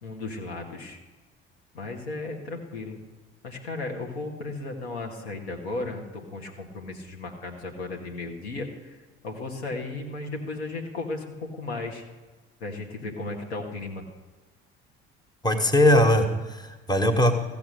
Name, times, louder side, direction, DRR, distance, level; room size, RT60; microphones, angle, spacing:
voice 1, 0.0-1.0 1.7-3.0 3.4-9.0 9.2-12.0 12.6-14.0, left 2 dB, 75° left, 1 dB, 1.6 m, -35 dB
voice 2, 15.4-17.4, left 1 dB, 10° left, 5 dB, 1.4 m, -20 dB
15.0 x 7.0 x 6.5 m, 1.3 s
figure-of-eight pair, 55°, 32 cm